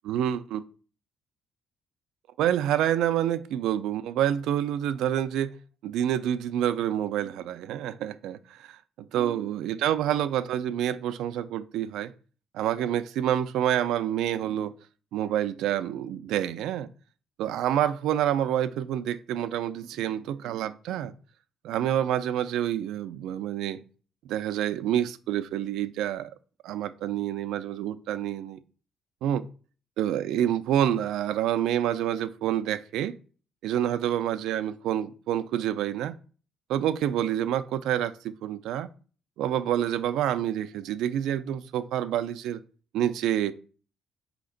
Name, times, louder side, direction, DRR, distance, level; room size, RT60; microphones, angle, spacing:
voice 1, 0.0-0.6 2.4-5.6 5.8-12.1 12.5-14.7 15.1-16.9 17.4-21.1 21.6-23.8 24.3-26.3 26.6-28.6 29.2-29.5 30.0-33.1 33.6-36.1 36.7-38.9 39.4-42.6 42.9-43.5, right 11 dB, 85° right, 0.3 m, -28 dB
4.2 x 2.8 x 3.8 m
cardioid pair, 145°, 0 cm